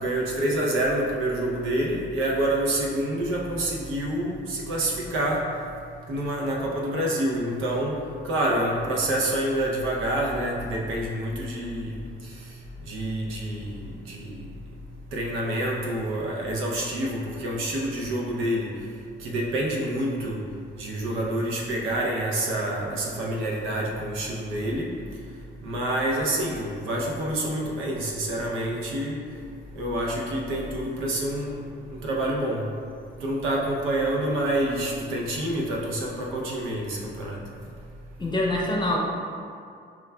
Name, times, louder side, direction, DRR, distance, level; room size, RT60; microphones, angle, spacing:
voice 1, 0.0-5.4 6.1-8.0 8.2-11.9 12.9-13.8 14.1-14.4 15.1-18.7 19.2-20.4 20.8-24.9 25.6-29.2 29.8-31.6 31.9-32.6 33.2-37.4, right 1 dB, 90° right, -2 dB, 0.7 m, -27 dB
voice 2, 38.2-39.0, left 1 dB, 20° left, -2 dB, 0.6 m, -25 dB
6.0 x 2.2 x 2.2 m, 2.3 s
cardioid pair, 90°, 20 cm